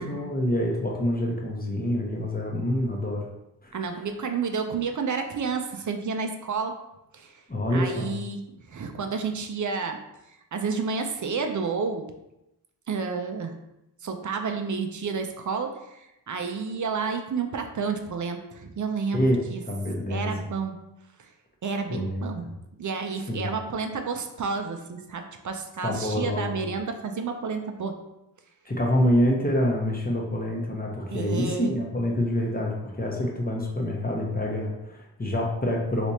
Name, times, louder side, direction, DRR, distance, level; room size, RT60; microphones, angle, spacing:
voice 1, 0.0-3.3 3.6-3.8 7.5-8.1 19.1-20.5 21.9-22.5 23.3-23.5 25.8-26.5 28.7-36.1, left 1 dB, 20° left, -1 dB, 0.8 m, -26 dB
voice 2, 3.7-6.7 7.1-7.4 7.7-10.0 10.3-12.1 12.9-13.5 14.0-19.2 19.5-19.6 20.1-20.8 21.2-21.3 21.6-22.5 22.8-27.9 31.1-31.8, right 5 dB, 45° right, 5 dB, 0.5 m, -30 dB
3.3 x 3.0 x 2.7 m, 0.89 s
cardioid pair, 55°, 45 cm